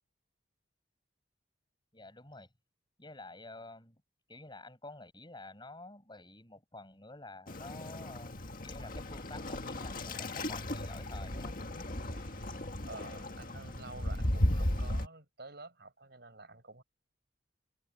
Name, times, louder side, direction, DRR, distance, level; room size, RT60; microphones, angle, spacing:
voice 1, 1.9-2.5 3.0-4.0 4.3-11.6, left 2 dB, 25° left, 5.9 m, -50 dB
Waves surf, 7.5-15.1, left 1 dB, 45° left, 1.8 m, -35 dB
voice 2, 12.1-16.8, right 3 dB, 55° right, 6.4 m, -50 dB
head